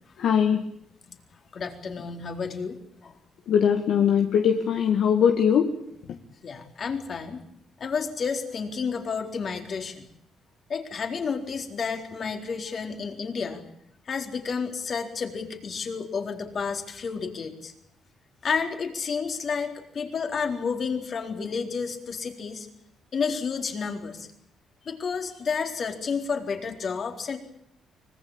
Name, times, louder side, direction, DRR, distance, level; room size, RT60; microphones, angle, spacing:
voice 1, 0.2-0.6 3.5-5.7, left 8 dB, 75° left, 4 dB, 2.0 m, -21 dB
voice 2, 1.5-3.1 6.4-7.4 7.8-10.0 10.7-13.7 14.1-17.7 18.4-22.7 23.1-24.3 24.9-27.4, left 5 dB, 50° left, 4 dB, 4.1 m, -31 dB
24.5 x 20.0 x 8.9 m, 0.74 s
cardioid pair, 90°, 0 cm